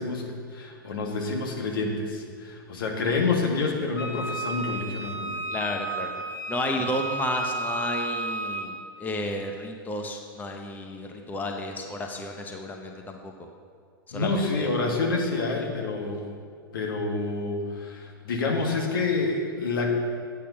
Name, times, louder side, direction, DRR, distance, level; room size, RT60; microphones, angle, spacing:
voice 1, 0.0-5.4 14.1-16.3 16.7-19.9, left 3 dB, 65° left, 1 dB, 1.8 m, -28 dB
Wind instrument woodwind instrument, 4.0-8.7, right 3 dB, 80° left, 2.3 m, -32 dB
voice 2, 5.5-6.2 6.5-13.3 14.1-14.7, left 1 dB, 15° left, 3 dB, 0.9 m, -32 dB
8.5 x 8.5 x 5.5 m, 2.1 s
figure-of-eight pair, 100°, 12 cm